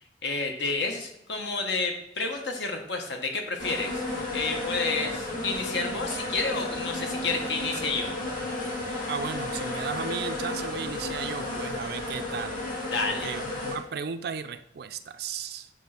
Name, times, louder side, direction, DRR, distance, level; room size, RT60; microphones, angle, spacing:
voice 1, 0.2-4.0 4.3-8.1 12.9-13.3, left 3 dB, 80° left, 3 dB, 1.2 m, -30 dB
sound 1, 3.6-13.8, left 2 dB, 50° left, 2.3 m, -33 dB
voice 2, 9.1-12.7 13.1-15.7, right 6 dB, 60° right, 10 dB, 0.5 m, -35 dB
7.2 x 3.2 x 5.8 m, 0.82 s
head